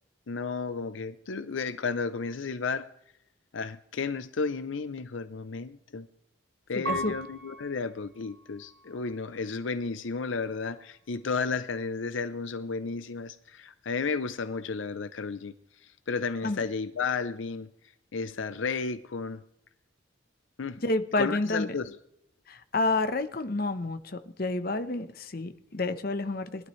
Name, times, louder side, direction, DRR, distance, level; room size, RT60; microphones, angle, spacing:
voice 1, 0.3-2.9 3.5-6.1 6.7-17.7 18.1-19.4 20.6-20.8 21.2-22.0, left 4 dB, 75° left, 0.6 m, -33 dB
voice 2, 6.7-7.1 16.4-16.6 20.8-21.7 22.5-26.7, left 2 dB, 50° left, 0.9 m, -29 dB
Piano, 6.9-9.6 10.2-10.9, right 2 dB, 80° right, 4.8 m, -40 dB
21.5 x 12.0 x 3.2 m
head